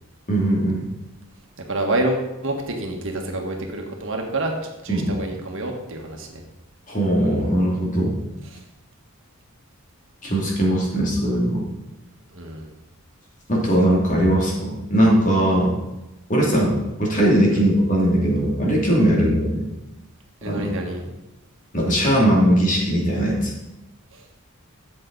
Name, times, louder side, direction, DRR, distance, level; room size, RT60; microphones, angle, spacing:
voice 1, 0.3-0.9 4.9-5.1 6.9-8.2 10.2-11.6 13.5-15.7 16.3-19.7 20.4-20.7 21.7-23.5, right 1 dB, 35° left, -3 dB, 2.7 m, -19 dB
voice 2, 1.7-4.5 4.8-6.4 8.5-8.6 12.3-12.7 17.5-17.6 19.1-19.3 20.4-21.1 24.1-24.2, right 2 dB, 60° right, 2 dB, 1.7 m, -28 dB
13.0 x 7.8 x 4.0 m, 1.0 s
head